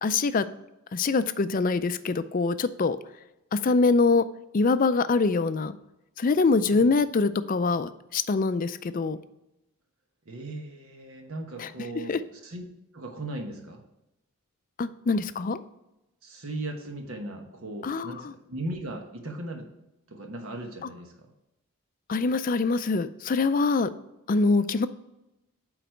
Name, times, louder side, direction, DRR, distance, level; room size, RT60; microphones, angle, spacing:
voice 1, 0.0-0.5 0.9-3.0 3.5-4.2 4.5-5.8 6.2-9.2 11.6-11.7 12.1-12.2 14.8-15.6 17.8-18.3 22.1-23.9 24.3-24.9, left 4 dB, 40° left, 12 dB, 0.4 m, -24 dB
voice 2, 10.3-12.6 12.9-13.8 16.2-19.7 20.1-21.3, right 1 dB, 75° right, 3 dB, 1.1 m, -37 dB
9.2 x 4.0 x 4.5 m, 0.91 s
head